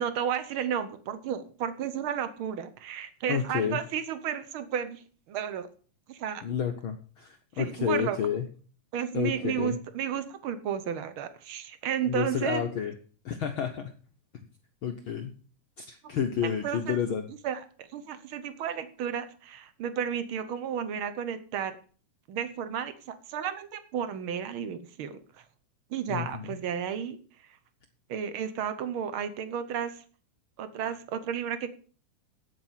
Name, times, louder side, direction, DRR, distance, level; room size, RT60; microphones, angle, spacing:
voice 1, 0.0-5.7 6.1-6.4 7.6-8.2 8.9-12.6 16.6-17.0 17.4-21.7 22.3-25.2 25.9-27.2 28.1-30.0 30.6-31.7, right 8 dB, 65° right, 11 dB, 1.3 m, -32 dB
voice 2, 3.3-3.8 6.4-8.4 9.1-9.8 12.1-12.9 13.2-13.9 14.8-15.3 15.8-17.3 26.1-26.6, left 8 dB, 90° left, 5 dB, 1.1 m, -30 dB
8.9 x 8.5 x 7.4 m, 0.41 s
omnidirectional pair, 3.6 m